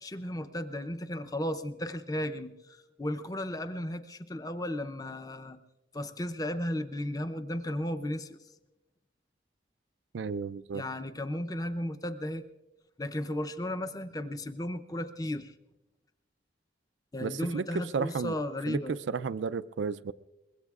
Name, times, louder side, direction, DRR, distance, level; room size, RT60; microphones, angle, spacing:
voice 1, 0.0-5.6 5.9-8.4 10.7-12.4 13.0-15.5 17.1-18.9, left 1 dB, 20° left, 0.6 m, -35 dB
voice 2, 10.1-10.8 17.2-18.4 18.7-20.1, right 5 dB, 80° right, 0.4 m, -33 dB
24.0 x 21.5 x 2.4 m
head